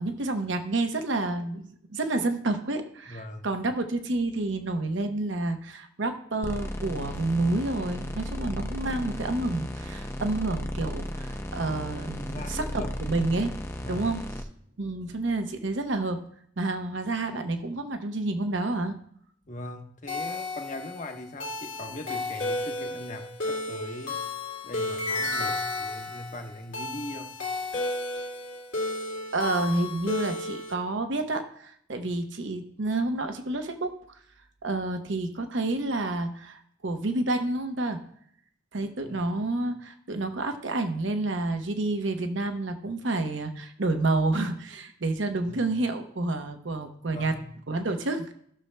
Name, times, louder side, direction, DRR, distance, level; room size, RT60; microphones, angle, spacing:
voice 1, 0.0-13.5 13.9-14.2 14.8-16.2 16.6-19.0 29.3-33.9 34.6-38.0 38.7-47.4 47.7-48.3, right 2 dB, 80° right, 6 dB, 0.9 m, -29 dB
voice 2, 3.1-3.5 12.2-13.3 13.8-14.1 19.5-24.2 24.6-27.4 38.8-39.2 45.4-45.7 47.1-47.5, left 1 dB, 40° left, 4 dB, 1.0 m, -40 dB
sound 1, 6.4-14.4, equal, 15° left, 0.6 m, -35 dB
sound 2, 20.1-30.7, left 2 dB, 85° left, 2.2 m, -33 dB
16.0 x 6.5 x 2.2 m, 0.66 s
head